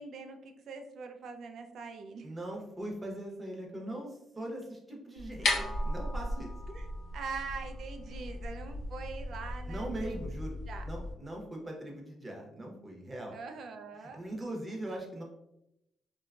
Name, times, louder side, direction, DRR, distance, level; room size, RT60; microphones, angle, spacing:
voice 1, 0.0-2.3 6.7-6.9 7.1-10.2 10.7-10.9 13.3-14.2, right 4 dB, 65° right, 6 dB, 0.4 m, -43 dB
voice 2, 2.2-5.5 5.8-6.5 9.7-10.6 10.8-13.3 14.0-15.2, right 1 dB, 25° right, 0 dB, 0.8 m, -40 dB
sound 1, 5.2-11.1, left 1 dB, 70° left, 0.7 m, -36 dB
2.9 x 2.3 x 2.3 m, 0.84 s
cardioid pair, 90°, 0 cm